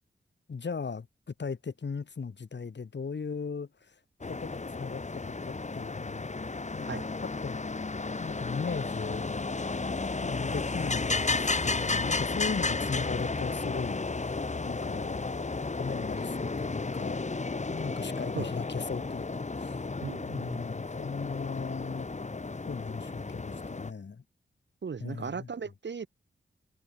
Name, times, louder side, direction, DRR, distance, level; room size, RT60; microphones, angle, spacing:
voice 1, 0.5-3.9 4.3-6.3 6.7-7.7 8.2-9.5 10.2-15.3 15.7-17.3 17.7-19.8 20.3-22.1 22.7-24.2 25.0-25.5, left 5 dB, 65° left, 4.0 m, -38 dB
sound 1, 4.2-23.9, left 3 dB, 35° left, 2.0 m, -33 dB
voice 2, 20.0-20.6 24.8-26.1, right 5 dB, 65° right, 2.5 m, -37 dB
cardioid pair, 50°, 20 cm